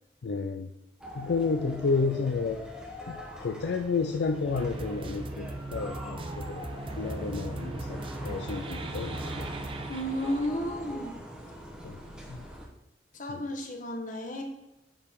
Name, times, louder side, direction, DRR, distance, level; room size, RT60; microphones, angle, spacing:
voice 1, 0.2-0.7 1.1-2.6 3.1-9.5 11.8-12.0 12.3-12.4 13.3-13.5, left 4 dB, 75° left, 5 dB, 0.4 m, -31 dB
sound 1, 1.0-12.7, equal, 5° right, 1.0 m, -43 dB
sound 2, 4.5-10.5, right 2 dB, 30° right, 0.5 m, -38 dB
voice 2, 9.9-11.1 13.1-14.4, equal, 45° left, 2 dB, 1.2 m, -33 dB
8.7 x 4.6 x 3.6 m, 0.94 s
head